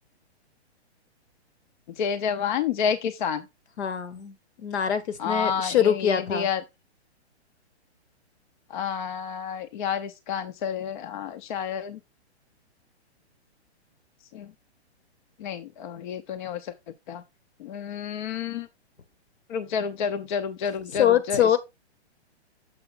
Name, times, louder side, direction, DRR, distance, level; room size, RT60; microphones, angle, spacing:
voice 1, 2.0-3.4 5.2-6.6 8.7-12.0 14.3-14.5 15.4-16.6 17.1-17.2 17.6-18.7 19.5-21.6, left 7 dB, 45° left, 0.6 m, -29 dB
voice 2, 3.8-6.5 20.9-21.6, left 9 dB, 75° left, 1.3 m, -24 dB
6.9 x 5.0 x 3.8 m
hypercardioid pair, 140°, 33 cm